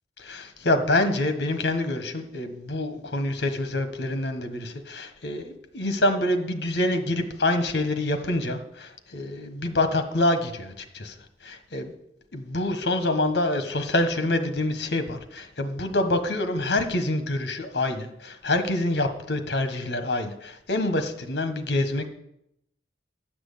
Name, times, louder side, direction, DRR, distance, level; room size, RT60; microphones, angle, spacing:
voice 1, 0.3-11.1 11.4-11.9 12.3-22.1, left 1 dB, 70° left, 8 dB, 1.4 m, -26 dB
10.0 x 6.2 x 8.5 m, 0.79 s
head